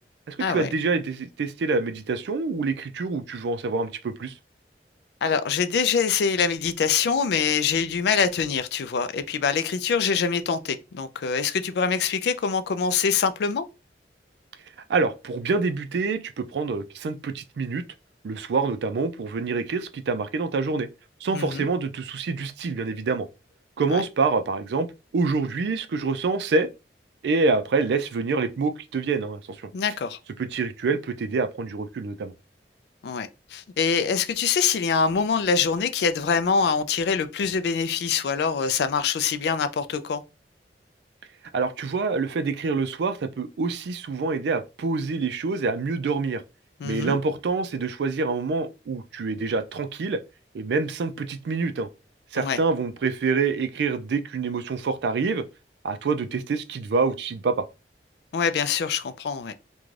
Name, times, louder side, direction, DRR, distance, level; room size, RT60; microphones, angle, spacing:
voice 1, 0.3-4.4 14.9-17.8 18.2-20.9 21.2-23.3 23.8-24.9 25.1-26.7 27.2-29.7 30.4-32.3 41.5-46.4 46.8-50.2 50.5-51.9 52.3-55.4 55.8-57.7, right 4 dB, 75° right, 0.3 m, -26 dB
voice 2, 5.2-13.7 21.3-21.7 23.9-24.0 29.7-30.2 33.0-40.2 46.8-47.2 52.4-52.6 58.3-59.5, left 6 dB, 70° left, 0.3 m, -24 dB
2.5 x 2.2 x 3.1 m
head